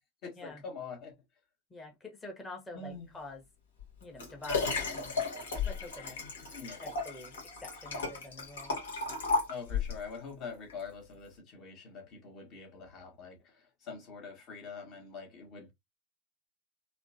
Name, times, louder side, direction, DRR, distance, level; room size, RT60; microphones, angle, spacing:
voice 1, 0.2-1.1 2.7-3.1 6.5-6.8 9.5-15.7, left 5 dB, 35° left, 1.3 m, -44 dB
voice 2, 1.7-3.4 4.0-8.8, left 2 dB, 15° left, 1.1 m, -47 dB
Liquid, 3.8-10.1 10.7-10.8, left 4 dB, 65° left, 1.1 m, -34 dB
3.6 x 2.2 x 2.6 m
figure-of-eight pair, 90°, 0 cm